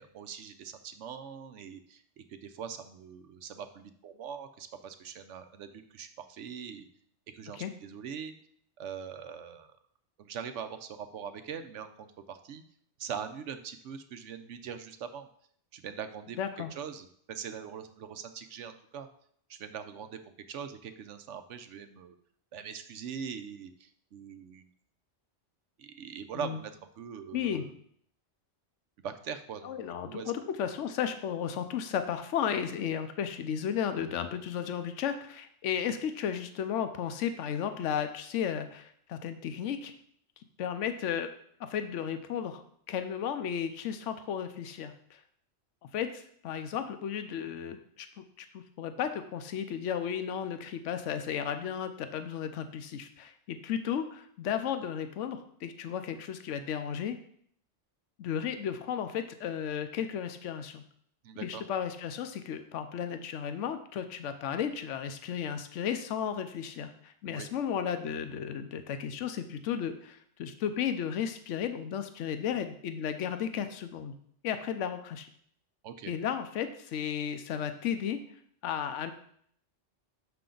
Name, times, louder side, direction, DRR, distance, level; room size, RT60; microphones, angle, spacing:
voice 1, 0.0-6.9 7.3-8.3 8.8-9.7 10.2-12.6 13.0-15.3 15.7-16.4 16.8-19.1 19.5-20.2 20.5-22.2 22.5-24.6 25.8-26.7 27.0-27.8 29.0-29.8 30.1-30.3 61.2-61.6 67.3-67.5 75.8-76.1, right 7 dB, 75° right, 9 dB, 1.0 m, -42 dB
voice 2, 16.4-16.7 26.4-26.6 27.3-27.6 29.6-39.9 40.6-41.3 41.6-42.6 42.9-45.2 45.9-48.1 48.4-57.2 58.2-60.8 61.4-74.1 74.4-75.3 76.1-78.2 78.6-79.1, left 8 dB, 80° left, 9 dB, 1.0 m, -34 dB
6.9 x 5.8 x 3.8 m, 0.64 s
omnidirectional pair, 1.2 m